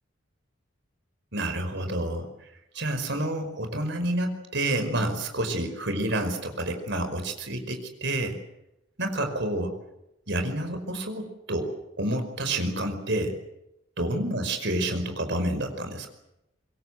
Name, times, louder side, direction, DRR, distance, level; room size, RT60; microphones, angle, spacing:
voice 1, 1.3-2.3 2.7-8.4 9.0-9.7 10.3-13.4 14.0-16.1, right 1 dB, 65° right, 6 dB, 5.2 m, -29 dB
25.5 x 22.5 x 8.0 m, 0.85 s
head